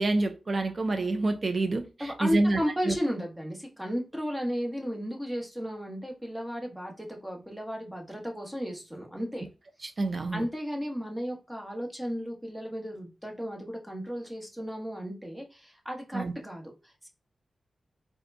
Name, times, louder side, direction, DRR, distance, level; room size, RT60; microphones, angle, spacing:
voice 1, 0.0-2.6 2.9-3.0 9.8-10.4 16.1-16.3, right 2 dB, 45° right, 0.5 m, -27 dB
voice 2, 2.0-9.5 10.3-17.1, equal, 5° right, 1.2 m, -34 dB
4.2 x 2.3 x 2.6 m
cardioid pair, 60°, 0 cm